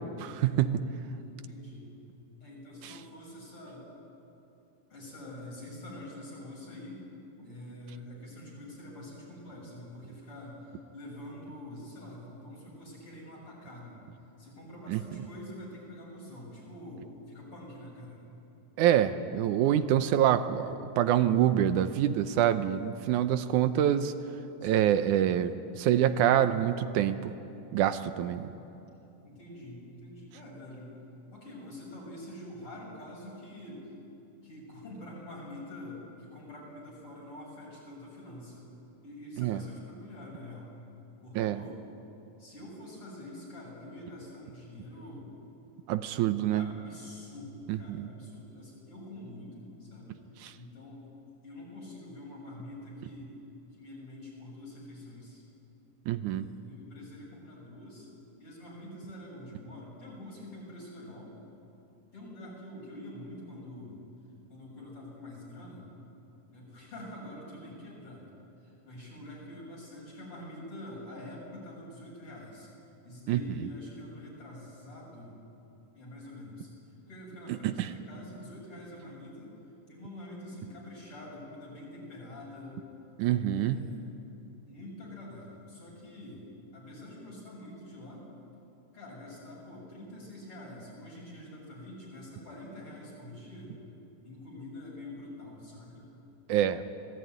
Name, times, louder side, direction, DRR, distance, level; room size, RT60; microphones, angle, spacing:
voice 1, 0.2-0.8 14.9-15.0 18.8-24.1 24.6-27.3 27.7-28.5 39.4-39.6 41.4-41.6 45.9-46.7 47.7-48.1 50.4-50.5 56.1-56.5 73.3-73.4 77.6-77.9 83.2-83.9 96.5-96.8, right 11 dB, 80° right, 10 dB, 2.2 m, -26 dB
voice 2, 0.8-1.9 2.4-3.9 4.9-7.0 7.4-14.0 14.4-18.2 24.6-25.2 28.2-28.5 29.2-30.9 31.3-33.9 34.4-38.7 39.0-40.7 41.2-41.8 42.4-45.3 46.5-50.2 50.5-51.1 51.4-53.3 53.7-55.4 56.2-58.1 58.4-61.4 62.1-64.0 64.5-65.9 66.5-72.7 73.0-75.4 75.9-76.7 77.1-79.5 79.9-82.9 83.4-84.2 84.7-86.4 86.7-88.3 88.9-93.8 94.2-96.1, left 1 dB, 45° left, -3 dB, 8.3 m, -46 dB
26.0 x 18.5 x 9.5 m, 2.8 s
omnidirectional pair, 3.6 m